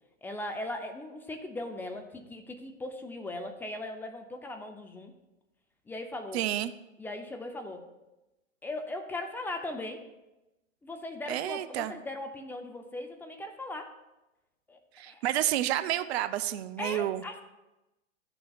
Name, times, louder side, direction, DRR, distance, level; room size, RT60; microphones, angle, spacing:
voice 1, 0.2-5.1 5.9-6.4 7.0-7.8 8.6-10.0 10.8-13.9 14.7-14.8 15.1-15.2 16.8-17.4, left 2 dB, 5° left, 5 dB, 0.4 m, -38 dB
voice 2, 6.3-6.7 11.3-11.9 14.9-17.2, right 13 dB, 50° right, 13 dB, 0.6 m, -30 dB
13.5 x 6.9 x 2.3 m, 0.98 s
hypercardioid pair, 110°, 40 cm